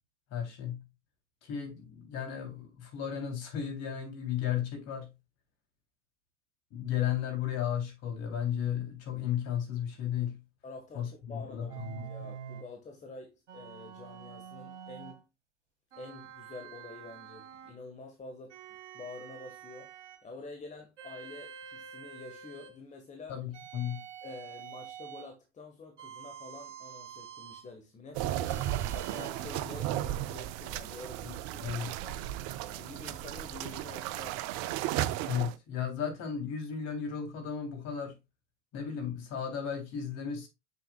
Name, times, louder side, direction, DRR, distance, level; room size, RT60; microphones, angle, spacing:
voice 1, 0.3-0.8 1.4-5.1 6.7-10.4 10.9-12.0 23.3-24.0 31.2-31.3 31.6-31.9 35.2-38.2 38.7-40.5, left 9 dB, 45° left, 3.4 m, -34 dB
voice 2, 10.6-15.3 16.0-19.9 20.2-23.4 24.2-32.2 32.7-34.4, left 3 dB, 20° left, 1.7 m, -48 dB
sound 1, 11.7-12.7 13.5-15.2 15.9-17.8 18.5-20.3 21.0-22.8 23.5-25.3 26.0-27.7 28.5-29.3, right 8 dB, 75° right, 2.0 m, -47 dB
sound 2, 28.1-35.5, right 13 dB, 45° right, 0.6 m, -35 dB
7.0 x 6.6 x 2.4 m
hypercardioid pair, 90°, 36 cm